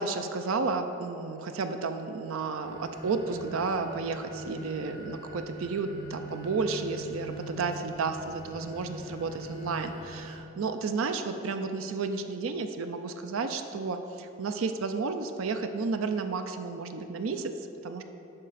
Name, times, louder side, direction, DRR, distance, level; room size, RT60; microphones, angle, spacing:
voice 1, 0.0-17.5 17.8-18.0, right 4 dB, 85° right, 7 dB, 0.5 m, -32 dB
sound 1, 2.5-10.4, equal, 65° left, 1.5 m, -43 dB
8.8 x 5.5 x 4.1 m, 3.0 s
head